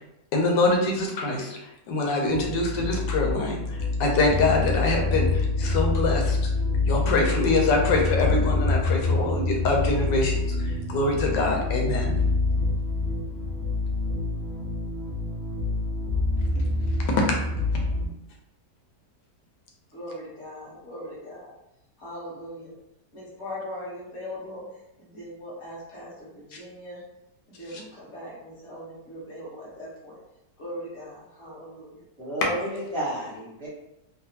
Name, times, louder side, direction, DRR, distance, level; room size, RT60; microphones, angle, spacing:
voice 1, 0.3-6.4 6.9-12.1 17.2-17.3, left 2 dB, 90° left, 1 dB, 1.3 m, -24 dB
sound 1, 2.3-18.0, left 3 dB, 85° right, 0.5 m, -26 dB
voice 2, 19.9-21.6 22.0-22.8 23.1-24.6 25.0-27.0 27.5-30.2 30.6-32.0, equal, 45° left, -7 dB, 1.3 m, -40 dB
voice 3, 32.2-33.7, right 1 dB, 30° right, -8 dB, 0.5 m, -31 dB
3.3 x 2.1 x 2.8 m, 0.88 s
omnidirectional pair, 1.9 m